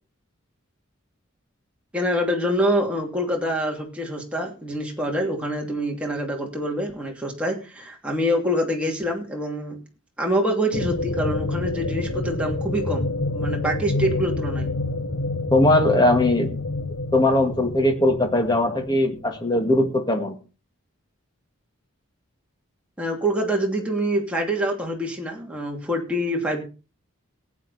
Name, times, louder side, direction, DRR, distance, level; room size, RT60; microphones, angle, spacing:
voice 1, 1.9-9.8 10.2-14.7 23.0-26.6, equal, 5° right, -1 dB, 2.8 m, -25 dB
sound 1, 10.7-19.4, left 2 dB, 70° left, 0.9 m, -28 dB
voice 2, 15.5-16.5 17.1-20.4, left 1 dB, 20° left, 5 dB, 2.0 m, -20 dB
18.0 x 8.9 x 4.2 m, 0.34 s
head